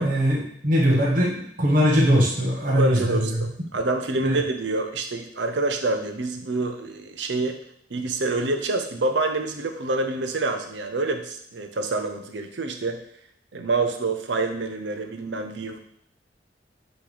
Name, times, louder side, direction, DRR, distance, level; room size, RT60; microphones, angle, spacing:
voice 1, 0.0-3.4 4.2-4.4, equal, 50° right, -3 dB, 1.3 m, -21 dB
voice 2, 2.7-7.6 7.9-13.0 13.5-15.8, right 2 dB, 85° right, 6 dB, 0.7 m, -27 dB
6.2 x 3.2 x 5.0 m, 0.68 s
head